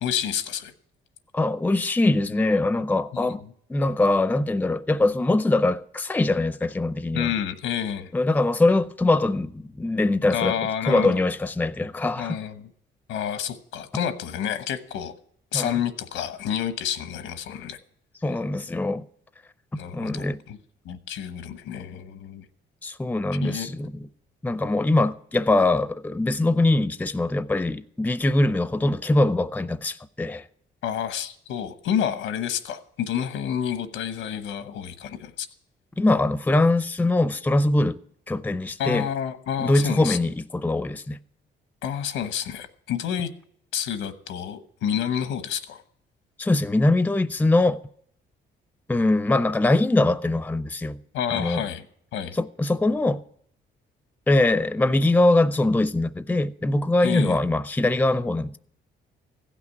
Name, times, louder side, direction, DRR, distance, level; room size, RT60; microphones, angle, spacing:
voice 1, 0.0-0.7 3.1-3.2 7.1-8.1 10.3-11.2 12.2-12.7 13.1-15.1 15.5-17.8 19.7-20.6 20.8-22.5 23.4-23.7 30.8-35.5 38.8-40.2 41.8-43.3 43.7-45.8 51.1-51.8 52.1-52.4 57.0-57.4, left 9 dB, 90° left, 1.1 m, -29 dB
voice 2, 1.3-3.4 3.7-7.3 8.1-10.6 10.9-12.4 15.5-15.8 18.2-19.0 19.9-20.4 22.8-24.1 24.4-30.5 36.0-38.0 38.3-39.1 39.6-41.2 46.4-47.8 48.9-51.0 51.3-51.6 52.3-53.2 54.3-58.6, left 2 dB, 10° left, 0.5 m, -22 dB
15.5 x 6.0 x 9.5 m
cardioid pair, 90°, 20 cm